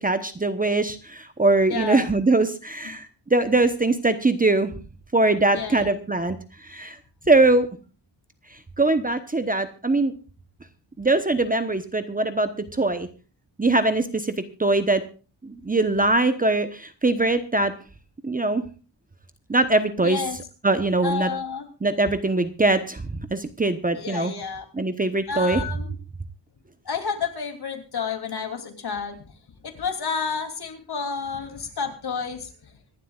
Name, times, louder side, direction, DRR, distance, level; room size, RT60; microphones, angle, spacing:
voice 1, 0.0-4.7 5.1-6.4 6.6-7.0 7.3-7.7 8.8-10.1 11.0-13.1 13.6-14.3 14.6-15.0 15.4-17.7 18.2-18.6 19.5-20.2 20.6-21.3 21.8-24.3 24.7-25.6, right 2 dB, 20° right, 9 dB, 1.0 m, -22 dB
voice 2, 1.7-2.0 5.5-5.9 20.0-20.4 21.0-21.7 24.0-24.7 25.3-25.9 26.9-29.2 29.6-32.7, left 6 dB, 55° left, 5 dB, 3.2 m, -30 dB
25.0 x 11.5 x 2.4 m, 0.35 s
wide cardioid pair, 135°, 45 cm